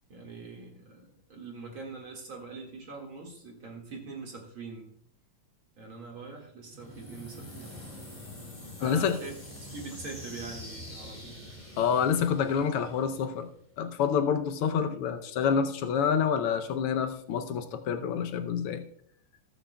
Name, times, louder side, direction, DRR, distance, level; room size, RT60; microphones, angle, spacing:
voice 1, 0.1-4.9 5.8-7.8 8.8-9.3 9.7-11.4, right 4 dB, 45° right, 1 dB, 2.4 m, -43 dB
sound 1, 6.7-13.6, left 1 dB, 15° left, 2.2 m, -45 dB
voice 2, 8.8-9.2 11.8-13.5 13.8-18.8, left 7 dB, 85° left, 7 dB, 1.2 m, -27 dB
20.0 x 7.6 x 2.2 m, 0.66 s
omnidirectional pair, 3.4 m